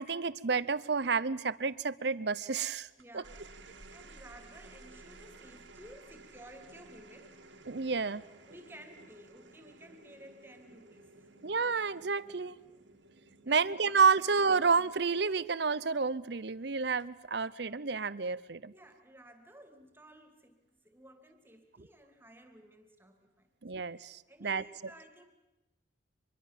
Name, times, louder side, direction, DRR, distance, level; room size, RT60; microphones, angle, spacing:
voice 1, 0.0-2.9 3.1-3.2 7.7-8.2 11.4-12.6 13.5-18.7 23.6-24.6, right 5 dB, 60° right, 17 dB, 0.7 m, -30 dB
voice 2, 3.0-3.4 3.9-7.4 8.5-11.3 13.4-13.6 14.1-14.2 14.5-14.6 18.7-20.6 20.8-23.5 23.8-23.9 24.3-25.2, right 1 dB, 10° right, 7 dB, 2.4 m, -55 dB
sound 1, 3.0-15.6 16.8-17.3, right 2 dB, 75° right, 2.1 m, -55 dB
25.0 x 22.0 x 7.4 m, 1.0 s
head